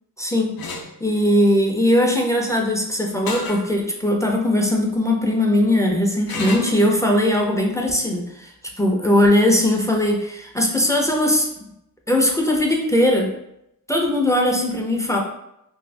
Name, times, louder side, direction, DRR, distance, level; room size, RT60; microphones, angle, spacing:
voice 1, 0.2-0.6 1.0-8.5 8.8-11.5 12.1-13.3 13.9-15.2, left 1 dB, 10° left, 0 dB, 0.4 m, -19 dB
sound 1, 0.6-0.9 3.3-3.6 4.2-4.3 6.3-6.8, left 3 dB, 80° left, 0.5 m, -30 dB
2.6 x 2.6 x 3.2 m, 0.80 s
wide cardioid pair, 75°, 36 cm